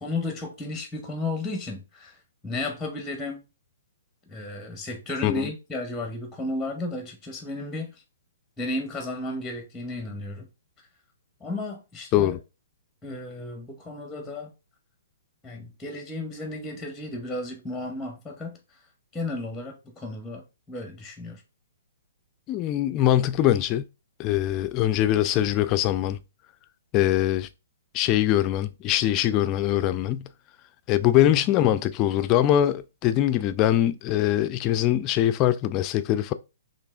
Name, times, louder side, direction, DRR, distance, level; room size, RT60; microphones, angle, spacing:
voice 1, 0.0-3.4 4.3-7.9 8.6-10.5 11.4-12.4 13.0-14.5 15.4-18.8 19.1-21.4, left 2 dB, 5° left, 0.7 m, -33 dB
voice 2, 22.5-23.8 24.2-26.2 26.9-27.5 27.9-30.3 30.9-36.3, left 12 dB, 30° left, 0.3 m, -22 dB
4.7 x 3.1 x 2.4 m
hypercardioid pair, 130°, 0 cm